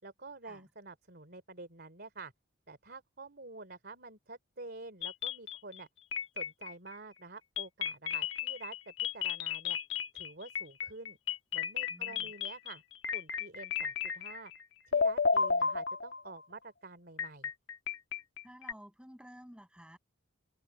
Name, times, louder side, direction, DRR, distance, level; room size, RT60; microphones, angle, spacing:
voice 1, 0.0-2.3 2.7-5.9 6.3-9.8 10.1-11.2 11.5-12.8 13.1-14.5 14.9-17.5, right 3 dB, 45° right, 3.4 m, -48 dB
sound 1, 5.0-5.8 6.1-6.9 7.6-14.6 14.9-16.4 17.2-18.7, left 6 dB, 55° left, 1.6 m, -33 dB
voice 2, 11.9-12.3 18.4-20.0, equal, 5° right, 7.5 m, -53 dB
head